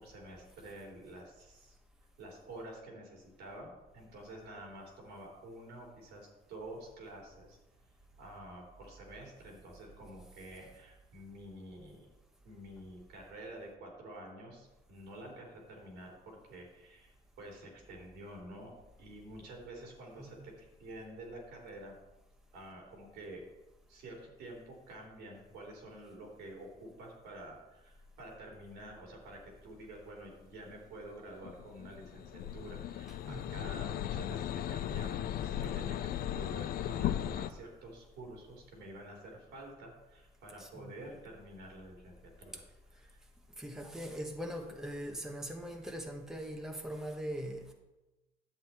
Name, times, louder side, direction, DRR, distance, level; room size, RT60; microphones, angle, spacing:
voice 1, 0.0-1.8 2.2-7.6 8.2-12.1 12.4-21.9 22.5-23.4 23.9-42.6 43.1-43.2, right 1 dB, 80° right, 3.5 m, -49 dB
sound 1, 31.4-37.5, left 11 dB, 60° left, 0.5 m, -36 dB
voice 2, 33.1-33.7 40.6-40.9 42.5-42.6 43.6-47.7, equal, 5° right, 1.2 m, -41 dB
11.0 x 7.7 x 4.4 m
cardioid pair, 110°, 17 cm